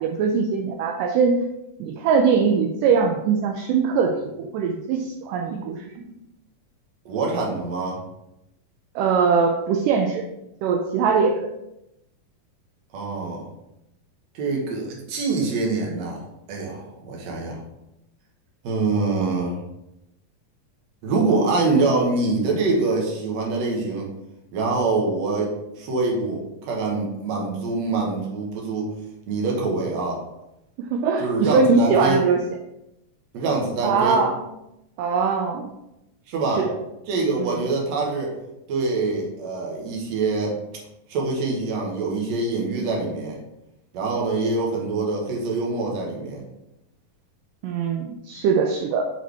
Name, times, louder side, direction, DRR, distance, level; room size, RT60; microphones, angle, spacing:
voice 1, 0.0-1.4 1.8-6.1 9.0-10.2 10.6-11.5 30.8-32.4 33.8-34.3 35.0-35.7 36.6-36.7 37.4-37.6 47.6-49.1, right 5 dB, 80° right, 3 dB, 2.0 m, -21 dB
voice 2, 7.1-8.0 12.9-13.5 14.3-16.2 16.5-17.6 18.6-19.6 21.0-24.1 24.5-25.5 25.8-28.9 29.3-30.2 31.2-32.2 33.3-34.2 36.3-36.7 37.1-38.3 38.7-40.5 41.1-43.4 43.9-46.4, right 3 dB, 60° right, -2 dB, 2.1 m, -24 dB
6.1 x 4.7 x 3.4 m, 0.88 s
omnidirectional pair, 4.1 m